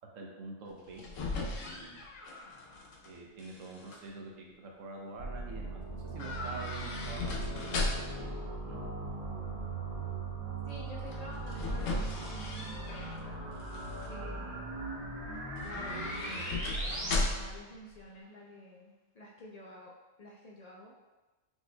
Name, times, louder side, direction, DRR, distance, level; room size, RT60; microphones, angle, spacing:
voice 1, 0.1-1.0 1.4-2.0 3.0-8.4 8.6-8.8, right 2 dB, 80° right, -1 dB, 1.1 m, -46 dB
sound 1, 0.7-3.1 3.4-4.0 6.2-8.3 11.1-13.2 13.6-14.1 15.6-17.7 17.9-18.0, left 2 dB, 85° left, 1.1 m, -36 dB
sound 2, 5.2-17.2, right 3 dB, 35° right, 0.9 m, -39 dB
voice 2, 10.7-13.4 14.1-14.8 15.6-16.4 16.9-20.9, left 1 dB, 60° left, -3 dB, 0.4 m, -50 dB
6.1 x 3.1 x 2.2 m, 1.2 s
omnidirectional pair, 1.3 m